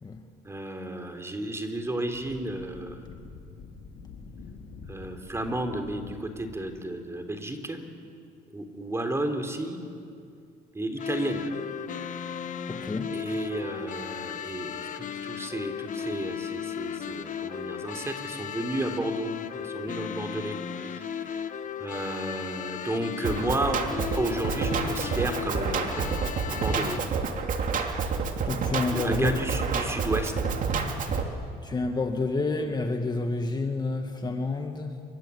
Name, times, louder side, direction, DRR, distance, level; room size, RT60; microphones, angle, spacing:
voice 1, 0.4-3.1 4.9-7.8 8.5-9.8 10.7-11.5 13.1-19.3 19.6-21.5 21.8-23.8 24.1-27.0 28.9-30.5, right 1 dB, 15° right, 6 dB, 3.4 m, -32 dB
Wind, 2.0-6.7, left 4 dB, 70° left, 4.0 m, -46 dB
sound 1, 11.0-27.0, left 8 dB, 50° left, 1.3 m, -36 dB
voice 2, 12.7-13.2 28.5-29.4 31.6-35.0, left 3 dB, 25° left, 5 dB, 1.7 m, -29 dB
Drum kit, 23.2-31.2, right 5 dB, 50° right, 2.6 m, -29 dB
28.0 x 24.5 x 8.4 m, 2.4 s
cardioid pair, 110°, 17 cm